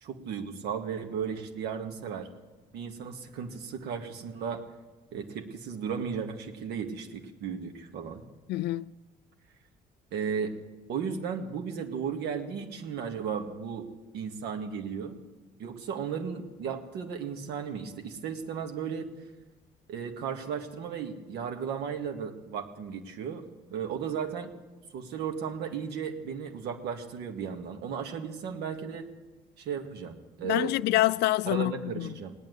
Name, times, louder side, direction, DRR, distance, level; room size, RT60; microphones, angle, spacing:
voice 1, 0.0-2.3 2.7-4.6 5.1-8.2 10.1-10.5 10.9-13.9 14.1-15.2 15.6-19.1 19.9-23.4 23.7-24.5 24.9-29.1 29.6-30.7 31.5-32.3, right 7 dB, 80° right, 2.0 m, -35 dB
voice 2, 8.5-8.9 30.4-32.1, left 16 dB, 80° left, 0.4 m, -26 dB
19.0 x 9.3 x 8.2 m
cardioid pair, 110°, 17 cm